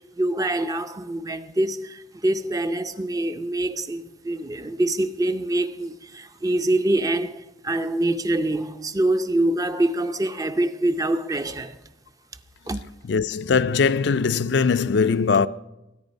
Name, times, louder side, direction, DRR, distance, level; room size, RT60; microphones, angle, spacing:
voice 1, 0.0-11.8 12.7-12.8, right 1 dB, 20° right, 0.6 m, -25 dB
voice 2, 13.1-15.5, left 5 dB, 65° left, 0.4 m, -20 dB
21.5 x 9.8 x 5.3 m
head